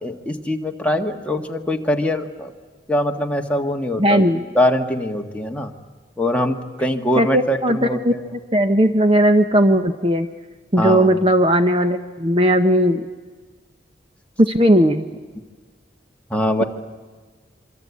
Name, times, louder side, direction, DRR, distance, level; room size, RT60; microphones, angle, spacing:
voice 1, 0.0-2.5 2.9-5.7 6.2-8.3 10.8-11.1 16.3-16.6, left 1 dB, 5° left, 2 dB, 1.6 m, -22 dB
voice 2, 4.0-4.4 7.2-8.1 8.5-10.3 10.7-13.0 14.4-15.1, equal, 30° right, 8 dB, 0.8 m, -17 dB
26.0 x 24.5 x 8.4 m, 1.4 s
head